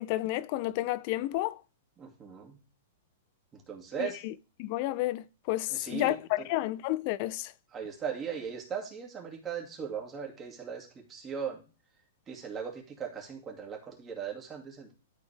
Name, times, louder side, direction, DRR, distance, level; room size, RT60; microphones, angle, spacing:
voice 1, 0.0-1.6 4.0-4.3 4.6-7.5, left 16 dB, 45° left, 0.4 m, -31 dB
voice 2, 2.0-2.6 3.5-4.2 5.7-6.5 7.7-11.6 12.3-14.9, right 7 dB, 20° right, 2.2 m, -38 dB
12.5 x 4.2 x 3.4 m
hypercardioid pair, 140°, 0 cm